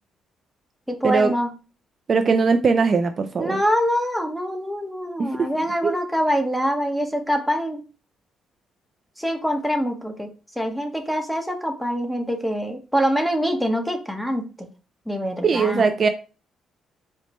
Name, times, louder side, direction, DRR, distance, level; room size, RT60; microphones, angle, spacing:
voice 1, 0.9-1.5 3.4-7.8 9.2-10.3 10.6-14.7 15.1-15.8, equal, ahead, 4 dB, 0.7 m, -24 dB
voice 2, 2.1-3.6 5.4-5.5 5.8-5.9 15.4-16.1, right 4 dB, 45° right, 8 dB, 0.3 m, -20 dB
4.3 x 2.1 x 2.9 m, 0.34 s
cardioid pair, 90°, 0 cm